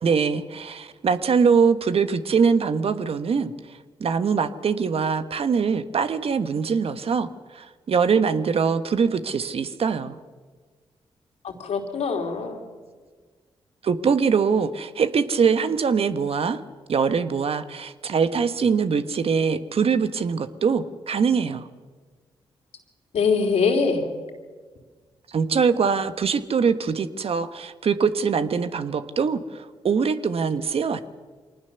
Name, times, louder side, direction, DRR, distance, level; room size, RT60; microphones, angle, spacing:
voice 1, 0.0-10.2 13.8-16.6 16.9-21.7 25.3-31.0, right 6 dB, 60° right, 11 dB, 1.3 m, -23 dB
voice 2, 11.4-12.6 23.1-24.0, left 5 dB, 75° left, 3 dB, 3.3 m, -23 dB
23.5 x 19.5 x 6.9 m, 1.5 s
supercardioid pair, 50°, 11 cm